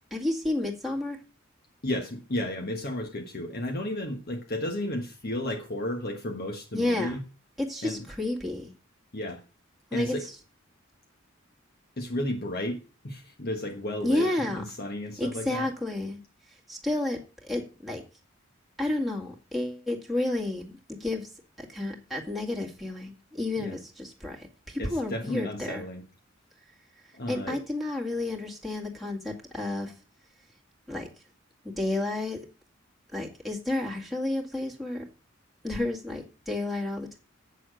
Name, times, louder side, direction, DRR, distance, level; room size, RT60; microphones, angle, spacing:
voice 1, 0.1-1.2 6.7-7.2 7.6-8.7 9.9-10.2 14.0-14.6 15.2-16.2 16.7-18.0 18.8-21.3 21.6-25.8 27.3-29.9 30.9-31.1 31.6-32.4 33.1-35.0 35.6-37.2, left 2 dB, ahead, -2 dB, 2.0 m, -31 dB
voice 2, 1.8-7.2 7.8-8.0 9.1-9.4 9.9-10.3 12.0-15.7 23.6-23.8 24.8-26.0 27.1-27.6, left 1 dB, 50° left, 3 dB, 1.3 m, -33 dB
8.3 x 6.9 x 6.4 m, 0.33 s
head